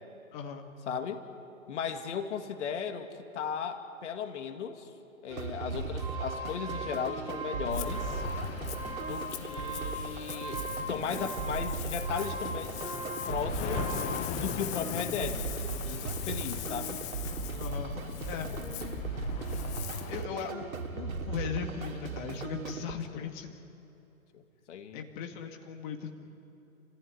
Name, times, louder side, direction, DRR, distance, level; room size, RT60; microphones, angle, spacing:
voice 1, 0.3-0.7 17.6-18.0 18.3-18.5 18.8-19.0 20.1-23.6 24.9-26.1, left 6 dB, 35° left, 4 dB, 2.1 m, -38 dB
voice 2, 0.9-1.2 1.7-3.1 3.3-4.9 5.2-8.2 9.0-12.7 13.3-13.9 14.4-15.5 15.8-17.0 23.1-23.3 24.3-24.4 24.7-25.0, left 7 dB, 55° left, 6 dB, 2.2 m, -36 dB
sound 1, 5.3-22.9, right 5 dB, 80° right, 2.3 m, -38 dB
sound 2, 5.7-14.2, equal, 5° right, 7.2 m, -40 dB
Ocean, 7.7-20.2, left 10 dB, 15° left, 0.8 m, -39 dB
30.0 x 15.5 x 10.0 m, 3.0 s
hypercardioid pair, 135°, 42 cm